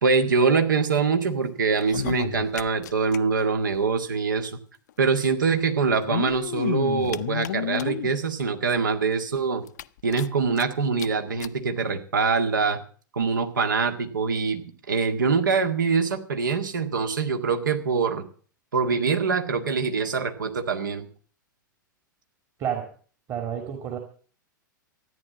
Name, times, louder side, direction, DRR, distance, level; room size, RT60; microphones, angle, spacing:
voice 1, 0.0-4.5 5.0-9.6 10.0-12.8 13.1-14.6 14.9-18.2 18.7-21.1, right 5 dB, 70° right, 7 dB, 1.9 m, -24 dB
sound 1, 1.7-3.2 3.4-3.5 3.7-3.8 4.9-5.0 5.8-8.1 8.7-8.8 9.2-9.3 9.7-10.6 11.0-11.1 11.4-11.5 12.3-12.4, left 11 dB, 60° left, 0.6 m, -31 dB
voice 2, 23.3-24.0, right 9 dB, 30° right, 5 dB, 2.2 m, -30 dB
14.0 x 9.8 x 7.3 m, 0.43 s
figure-of-eight pair, 95°, 11 cm